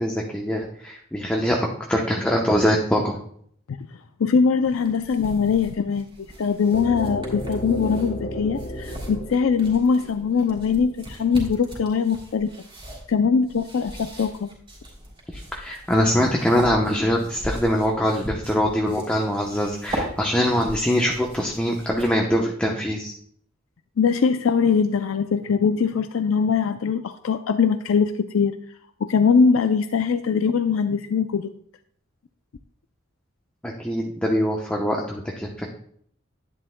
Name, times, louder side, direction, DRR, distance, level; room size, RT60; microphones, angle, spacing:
voice 1, 0.0-3.2 15.3-23.1 33.6-35.7, equal, 5° left, 0 dB, 0.8 m, -23 dB
voice 2, 4.2-12.5 13.1-14.5 24.0-28.6 29.1-31.5, left 5 dB, 80° left, 9 dB, 0.4 m, -21 dB
sound 1, 4.6-22.4, right 1 dB, 25° right, 3.4 m, -39 dB
sound 2, 6.7-10.6, equal, 50° left, 1.1 m, -33 dB
11.0 x 10.0 x 2.2 m, 0.64 s
head